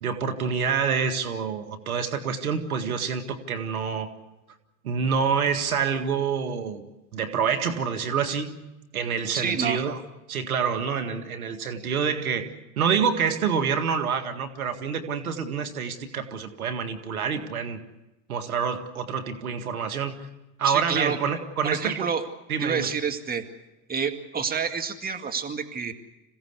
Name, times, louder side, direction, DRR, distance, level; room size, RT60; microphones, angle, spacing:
voice 1, 0.0-4.1 4.8-6.8 7.1-8.6 8.9-10.0 10.3-17.8 18.3-20.3 20.6-22.1 22.5-22.9, right 6 dB, 85° right, 7 dB, 2.0 m, -27 dB
voice 2, 9.3-9.8 20.6-21.2 21.6-22.2 22.6-23.5 23.9-25.9, right 6 dB, 20° right, 5 dB, 2.1 m, -28 dB
26.5 x 16.5 x 8.3 m, 1.0 s
hypercardioid pair, 90°, 42 cm